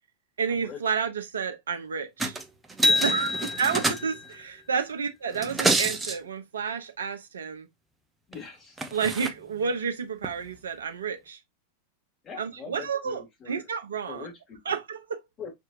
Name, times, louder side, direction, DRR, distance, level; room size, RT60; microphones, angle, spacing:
voice 1, 0.4-2.4 3.0-7.7 8.9-11.4 12.4-14.3 14.6-15.2, right 6 dB, 65° right, 0.8 m, -30 dB
sound 1, 2.2-2.4 2.7-4.3 5.3-6.2 8.3-8.4 8.8-9.3 10.2-10.3, right 1 dB, 10° right, 0.7 m, -26 dB
voice 2, 8.3-8.8 12.2-13.6 14.1-14.6 15.4-15.5, left 7 dB, 25° left, 2.1 m, -42 dB
6.0 x 2.7 x 2.5 m
figure-of-eight pair, 90°, 0 cm